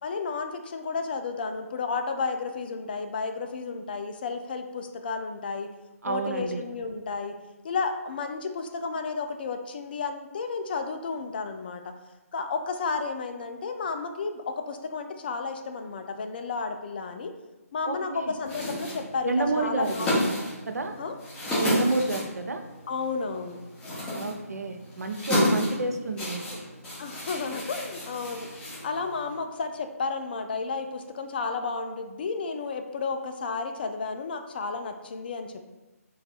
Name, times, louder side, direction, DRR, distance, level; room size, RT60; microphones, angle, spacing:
voice 1, 0.0-5.7 6.0-7.3 7.6-11.9 12.3-17.3 17.7-20.2 21.0-21.1 22.9-23.6 25.4-25.6 27.0-28.5 28.8-35.8, left 4 dB, 40° left, 6 dB, 0.3 m, -32 dB
voice 2, 6.0-6.6 17.9-18.3 19.2-20.1 20.7-20.9 21.6-22.6 24.1-26.4, right 2 dB, 80° right, 6 dB, 0.5 m, -29 dB
sound 1, 18.4-29.3, left 1 dB, 10° left, 1.0 m, -32 dB
3.2 x 2.3 x 4.1 m, 1.1 s
figure-of-eight pair, 150°, 8 cm